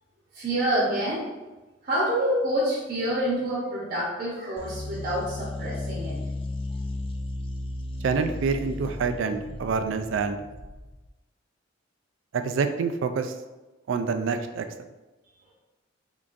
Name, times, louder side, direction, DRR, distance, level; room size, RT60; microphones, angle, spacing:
voice 1, 0.3-1.2 1.8-6.2, right 1 dB, 55° right, -5 dB, 0.8 m, -27 dB
sound 1, 4.6-11.1, left 2 dB, 30° left, 0.3 m, -35 dB
voice 2, 8.0-10.4 12.3-13.3 13.9-14.6, right 5 dB, 80° right, 8 dB, 0.3 m, -27 dB
3.7 x 3.5 x 2.5 m, 1.1 s
head